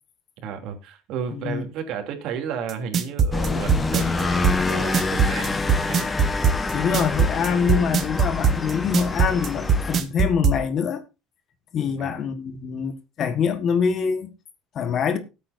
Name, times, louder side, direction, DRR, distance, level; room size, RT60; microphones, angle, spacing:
voice 1, 0.4-6.1 11.8-12.1, right 7 dB, 60° right, 3.1 m, -33 dB
voice 2, 1.3-1.6 6.7-11.0 11.7-14.3 14.7-15.2, left 6 dB, 40° left, 1.7 m, -25 dB
sound 1, 2.7-10.6, right 5 dB, 35° right, 1.7 m, -20 dB
sound 2, 3.3-10.0, left 3 dB, 15° left, 1.2 m, -27 dB
19.0 x 8.6 x 2.7 m
cardioid pair, 145°, 0 cm